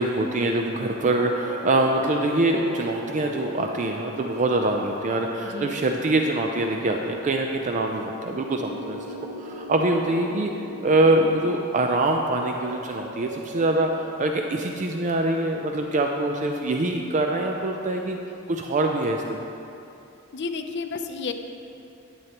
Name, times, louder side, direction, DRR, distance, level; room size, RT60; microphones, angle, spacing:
voice 1, 0.0-10.5 10.8-18.2 18.5-19.5, right 2 dB, 35° right, 3 dB, 0.4 m, -24 dB
sound 1, 0.8-17.1, equal, 70° right, 2.0 m, -40 dB
voice 2, 5.4-5.8 20.3-21.3, left 4 dB, 55° left, 6 dB, 0.6 m, -31 dB
11.0 x 9.3 x 2.9 m, 2.8 s
head